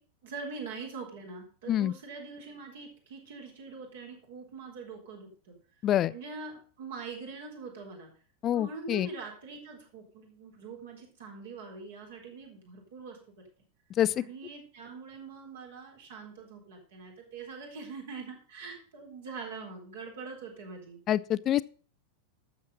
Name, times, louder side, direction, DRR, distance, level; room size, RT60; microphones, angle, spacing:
voice 1, 0.2-5.5 6.1-8.1 8.5-13.2 14.2-21.0, right 4 dB, 60° right, 3.9 m, -43 dB
voice 2, 8.4-9.1 14.0-14.2 21.1-21.6, left 11 dB, 30° left, 0.4 m, -26 dB
12.0 x 7.4 x 5.3 m
figure-of-eight pair, 90°, 0 cm